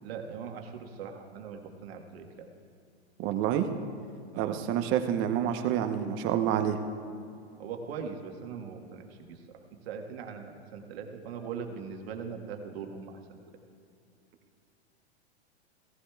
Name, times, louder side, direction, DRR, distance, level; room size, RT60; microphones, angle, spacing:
voice 1, 0.0-2.5 4.3-4.6 7.6-13.2, right 6 dB, 65° right, 3 dB, 1.6 m, -41 dB
voice 2, 3.2-3.7 4.4-6.8, right 10 dB, 35° right, 7 dB, 0.9 m, -28 dB
17.5 x 14.5 x 2.3 m, 2.5 s
hypercardioid pair, 115°, 33 cm